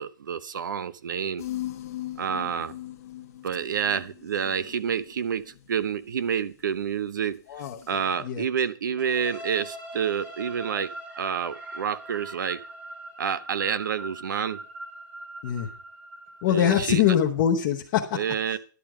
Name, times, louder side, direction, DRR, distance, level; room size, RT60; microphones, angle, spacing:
voice 1, 0.0-1.4 2.2-2.7 3.4-7.4 7.9-12.7 13.2-14.6 16.5-17.0 18.1-18.6, right 7 dB, 70° right, 0.9 m, -28 dB
sound 1, 1.4-6.0 7.6-8.0, left 14 dB, 50° left, 0.9 m, -39 dB
sound 2, 9.0-16.8, right 1 dB, 10° right, 0.9 m, -41 dB
voice 2, 16.4-18.2, left 10 dB, 25° left, 0.9 m, -23 dB
11.0 x 9.0 x 4.9 m
hypercardioid pair, 175°, 11 cm